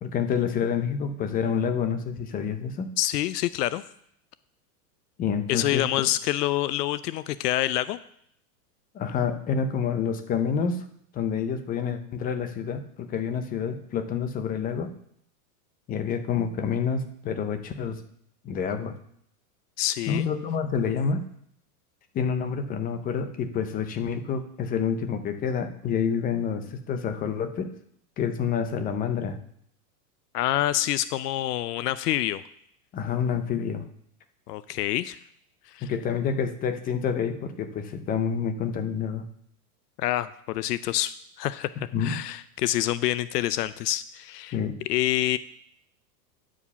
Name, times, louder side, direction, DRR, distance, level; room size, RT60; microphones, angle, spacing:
voice 1, 0.0-2.9 5.2-5.8 8.9-10.8 11.1-14.9 15.9-18.0 18.4-19.0 20.1-21.2 22.1-27.7 28.2-29.4 32.9-33.8 35.8-39.2 41.9-42.2 44.5-44.8, left 6 dB, 20° left, 8 dB, 0.6 m, -28 dB
voice 2, 3.0-3.8 5.5-8.0 19.8-20.3 30.3-32.4 34.5-35.2 35.7-35.9 40.0-44.6 44.9-45.4, left 14 dB, 75° left, 15 dB, 0.6 m, -27 dB
10.5 x 5.0 x 6.9 m, 0.69 s
supercardioid pair, 145°, 48 cm